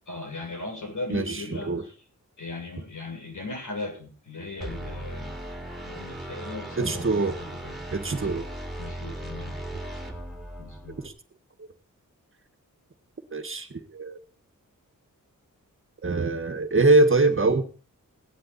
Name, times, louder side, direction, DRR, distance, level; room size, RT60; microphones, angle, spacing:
voice 1, 0.1-1.9 2.4-5.4 5.8-7.8 8.1-8.3 8.8-9.6 10.6-11.0, left 2 dB, 65° left, 2 dB, 7.2 m, -38 dB
voice 2, 1.1-1.8 6.8-7.4 7.9-8.5 11.0-11.1 11.6-11.7 13.3-14.2 16.0-17.6, right 3 dB, 40° right, 7 dB, 1.7 m, -23 dB
sound 1, 4.6-11.1, right 1 dB, ahead, 3.7 m, -37 dB
17.5 x 11.5 x 4.3 m, 0.38 s
wide cardioid pair, 150°, 33 cm